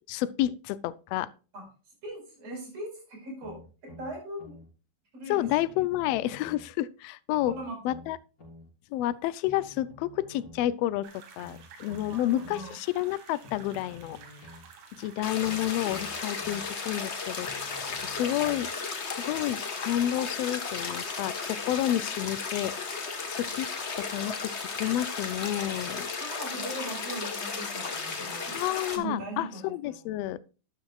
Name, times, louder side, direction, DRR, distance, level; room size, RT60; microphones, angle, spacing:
voice 1, 0.1-1.3 5.3-7.5 7.8-8.2 8.9-11.1 11.4-14.2 14.9-17.7 18.0-18.7 19.1-22.7 23.3-23.7 24.0-26.1 28.5-30.4, left 13 dB, 85° left, 1.4 m, -30 dB
voice 2, 2.0-4.6 5.1-5.5 7.5-7.8 12.1-12.7 26.2-28.6 28.9-30.1, right 1 dB, 55° right, 6.1 m, -39 dB
sound 1, 3.4-4.7 5.4-6.7 7.4-8.7 9.4-10.7 11.4-12.7 13.4-14.7 15.4-16.7 17.4-18.7 19.4-19.5, left 2 dB, 25° left, 5.2 m, -50 dB
sound 2, 11.0-19.0, right 6 dB, 80° right, 3.0 m, -52 dB
sound 3, 15.2-29.0, left 4 dB, 60° left, 0.6 m, -35 dB
12.5 x 10.0 x 2.4 m
omnidirectional pair, 3.5 m